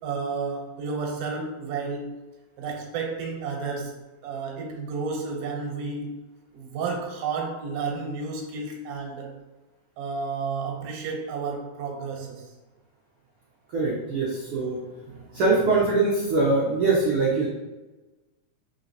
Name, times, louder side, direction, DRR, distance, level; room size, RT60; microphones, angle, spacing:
voice 1, 0.0-2.1 2.6-6.2 6.5-9.3 10.0-12.5, right 4 dB, 90° right, 1 dB, 2.4 m, -31 dB
voice 2, 13.7-14.8 15.1-17.5, right 3 dB, 75° right, -6 dB, 1.3 m, -23 dB
4.6 x 3.9 x 2.7 m, 1.1 s
omnidirectional pair, 3.5 m